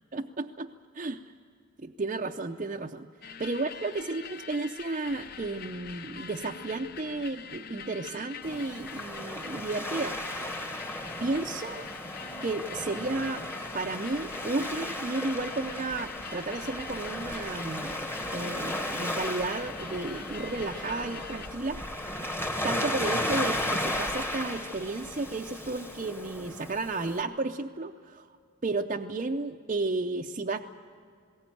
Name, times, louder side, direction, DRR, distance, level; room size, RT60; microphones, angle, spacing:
voice 1, 0.1-1.2 1.8-3.1 3.4-10.4 11.2-11.9 12.4-13.4 13.7-21.8 22.6-28.3 28.6-30.6, right 3 dB, 35° right, 1 dB, 0.6 m, -33 dB
sound 1, 3.2-21.5, left 7 dB, 45° left, 0.6 m, -44 dB
Waves surf, 8.4-27.2, left 1 dB, 10° left, 1.3 m, -35 dB
20.5 x 17.5 x 9.1 m, 2.4 s
head